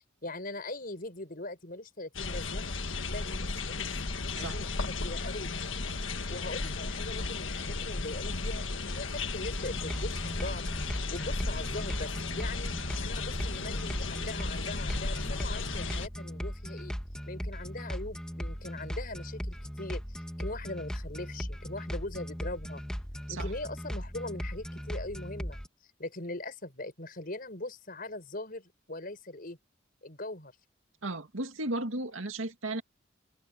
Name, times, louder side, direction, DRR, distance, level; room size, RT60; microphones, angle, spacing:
voice 1, 0.0-2.7 3.1-4.0 4.4-5.5 6.3-12.7 13.0-16.9 17.3-22.8 23.3-25.6 26.0-29.6 30.0-30.5, left 2 dB, 45° left, 5.7 m, -41 dB
sound 1, 2.1-16.1, left 3 dB, 75° left, 1.6 m, -35 dB
sound 2, 9.4-25.7, equal, 5° left, 1.5 m, -38 dB
voice 2, 31.0-32.8, right 2 dB, 85° right, 2.1 m, -34 dB
head